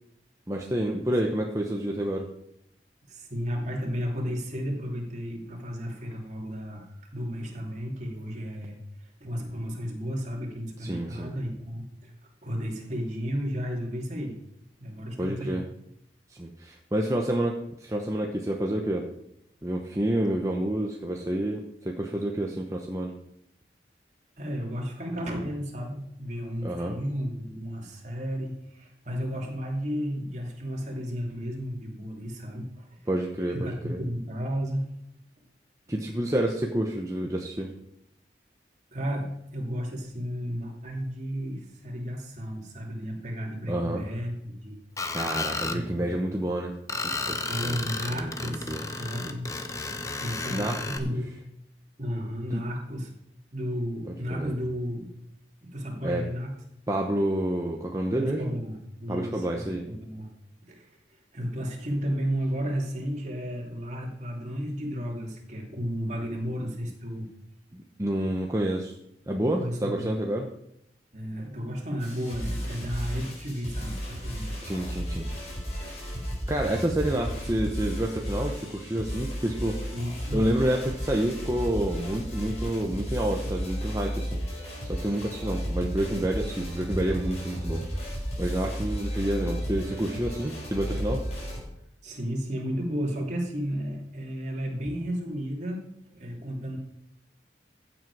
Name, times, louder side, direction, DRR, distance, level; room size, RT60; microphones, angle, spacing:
voice 1, 0.5-2.3 10.8-11.3 15.2-15.7 16.3-19.1 19.6-23.1 26.6-27.0 33.1-34.0 35.9-37.7 43.7-44.0 45.1-46.7 47.0-47.4 47.6-48.8 50.5-51.1 52.5-52.6 54.1-54.5 56.0-56.2 56.9-58.6 59.1-59.9 67.7-68.9 69.3-70.5 74.6-75.4 76.5-79.8 80.3-84.4 84.8-87.8 88.4-91.2, right 1 dB, 20° right, 1 dB, 0.9 m, -29 dB
voice 2, 3.1-8.8 9.2-12.1 12.4-14.4 14.8-15.6 24.4-33.0 33.5-34.9 38.9-44.8 45.7-46.2 47.3-49.5 50.2-51.3 52.0-53.1 53.5-55.1 55.7-56.5 58.1-60.3 60.6-60.9 61.3-67.3 69.6-70.1 71.1-74.5 76.1-76.2 79.9-80.4 92.0-96.8, equal, 40° right, 0 dB, 2.9 m, -33 dB
Screech, 45.0-45.8 46.9-51.0, left 3 dB, 20° left, 0.8 m, -33 dB
sound 1, 72.0-91.6, equal, 40° left, 4.4 m, -33 dB
15.0 x 7.9 x 4.8 m, 0.79 s
head